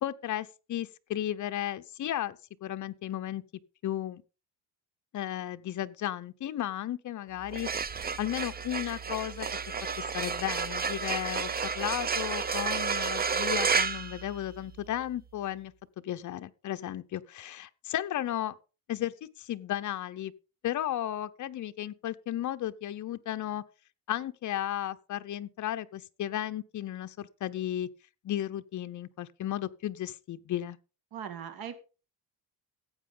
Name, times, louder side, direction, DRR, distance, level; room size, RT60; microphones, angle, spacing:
voice 1, 0.0-3.4 3.8-4.2 5.1-7.7 8.2-9.5 10.0-15.7 16.0-18.5 18.9-20.3 20.6-23.6 24.1-27.9 28.2-30.8, left 12 dB, 50° left, 0.8 m, -34 dB
sound 1, 7.4-14.9, right 5 dB, 25° right, 0.6 m, -31 dB
voice 2, 31.1-31.8, right 8 dB, 65° right, 2.3 m, -39 dB
14.5 x 8.7 x 3.9 m
cardioid pair, 145°, 38 cm